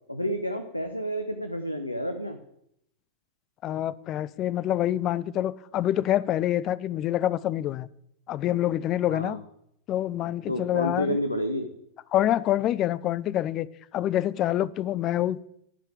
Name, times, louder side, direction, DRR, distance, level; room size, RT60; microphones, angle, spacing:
voice 1, 0.1-2.4 9.1-9.4 10.5-11.7, equal, 85° left, 0.9 m, -30 dB
voice 2, 3.6-7.9 8.3-9.4 9.9-11.2 12.1-13.7 13.9-15.5, left 12 dB, 35° left, 0.5 m, -26 dB
11.5 x 5.6 x 8.6 m
figure-of-eight pair, 90°, 0 cm